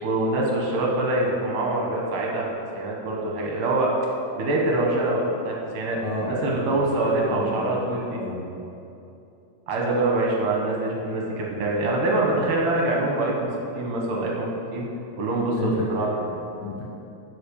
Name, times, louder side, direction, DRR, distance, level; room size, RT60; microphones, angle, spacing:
voice 1, 0.0-3.9 4.3-8.2 9.7-13.5 13.8-14.8 15.2-16.1, right 2 dB, 70° right, -2 dB, 2.5 m, -25 dB
voice 2, 6.0-7.8 8.2-8.5 15.6-16.8, left 1 dB, 60° left, -4 dB, 2.4 m, -32 dB
11.0 x 5.1 x 7.0 m, 2.8 s
omnidirectional pair, 4.2 m